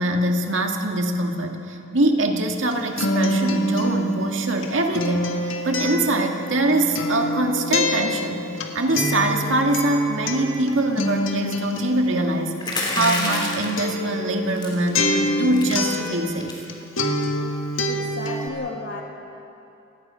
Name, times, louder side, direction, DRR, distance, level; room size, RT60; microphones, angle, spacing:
voice 1, 0.0-5.4 5.6-16.6, right 1 dB, 75° right, 3 dB, 2.0 m, -23 dB
Acoustic guitar, 2.5-16.7 17.0-18.5, left 1 dB, 90° left, 2.0 m, -26 dB
sound 1, 12.6-13.8 14.6-14.9 15.2-15.3 15.5-15.8 16.4-16.6, left 2 dB, 25° left, 3.5 m, -27 dB
voice 2, 17.9-19.0, left 2 dB, 65° left, 0 dB, 2.2 m, -33 dB
29.5 x 17.5 x 5.7 m, 2.8 s
head